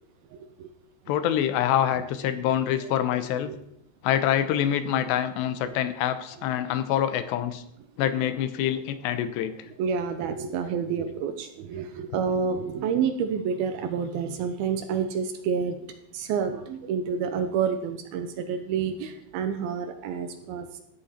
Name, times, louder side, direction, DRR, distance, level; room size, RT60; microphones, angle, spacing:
voice 1, 0.3-0.7 3.5-3.6 5.6-5.8 9.8-20.7, right 6 dB, 80° right, 8 dB, 2.4 m, -29 dB
voice 2, 1.1-3.5 4.0-7.6 8.0-9.5, left 10 dB, 85° left, 11 dB, 3.0 m, -25 dB
14.0 x 9.9 x 4.3 m, 0.76 s
omnidirectional pair, 4.8 m